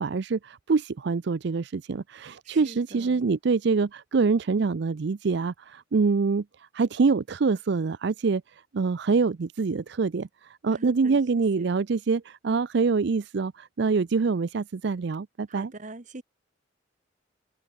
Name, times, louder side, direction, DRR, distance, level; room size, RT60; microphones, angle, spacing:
voice 1, 0.0-6.4 6.7-15.7, right 4 dB, 60° right, 0.5 m, -25 dB
voice 2, 2.4-3.2 10.7-11.2 11.6-11.7 15.5-16.2, right 2 dB, 40° right, 1.2 m, -43 dB
head